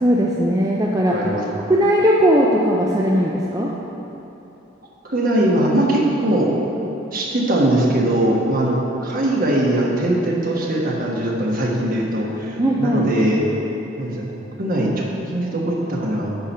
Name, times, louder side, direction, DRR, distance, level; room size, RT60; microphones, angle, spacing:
voice 1, 0.0-1.2 1.7-3.7 12.6-13.1, equal, 20° right, -3 dB, 0.5 m, -18 dB
voice 2, 1.1-1.4 5.0-6.5 7.1-13.4 14.0-14.3 14.6-16.4, right 1 dB, 45° right, -2 dB, 1.2 m, -21 dB
9.7 x 4.4 x 5.5 m, 3.0 s
head